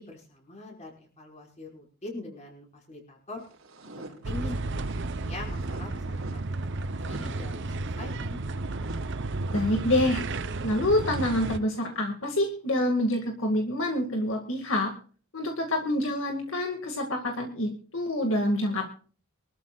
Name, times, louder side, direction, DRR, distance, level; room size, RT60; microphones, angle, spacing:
voice 1, 0.0-3.4 3.9-4.5 5.1-6.5 7.1-8.4, left 2 dB, 35° left, 0 dB, 5.3 m, -42 dB
sound 1, 3.4-12.0, right 1 dB, 85° right, 4.4 m, -45 dB
sound 2, 4.2-11.6, right 2 dB, 60° right, 0.7 m, -33 dB
voice 2, 9.5-10.2 10.6-14.9 15.3-18.8, left 1 dB, 70° left, 3 dB, 2.1 m, -27 dB
24.0 x 13.0 x 2.4 m, 0.39 s
head